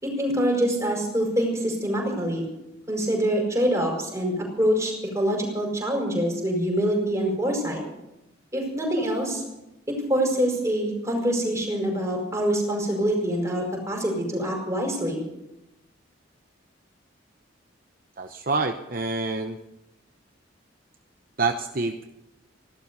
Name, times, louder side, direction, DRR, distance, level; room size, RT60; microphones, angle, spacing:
voice 1, 0.0-2.4 2.9-7.8 8.5-9.4 10.1-15.2, equal, 15° right, 0 dB, 4.9 m, -25 dB
voice 2, 18.2-19.6 21.4-22.0, right 3 dB, 45° right, 5 dB, 0.8 m, -27 dB
16.0 x 12.5 x 6.8 m, 0.90 s
head